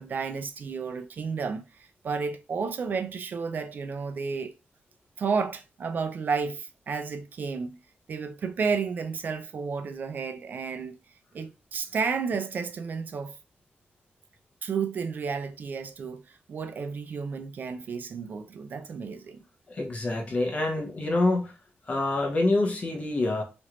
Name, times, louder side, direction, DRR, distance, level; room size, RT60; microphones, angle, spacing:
voice 1, 0.0-4.5 5.2-7.8 8.1-11.0 11.3-13.4 14.6-19.4, right 5 dB, 50° right, 0.3 m, -32 dB
voice 2, 19.7-21.5 21.9-23.4, left 2 dB, 35° left, 0.9 m, -26 dB
3.1 x 2.5 x 2.9 m
wide cardioid pair, 160°, 4 cm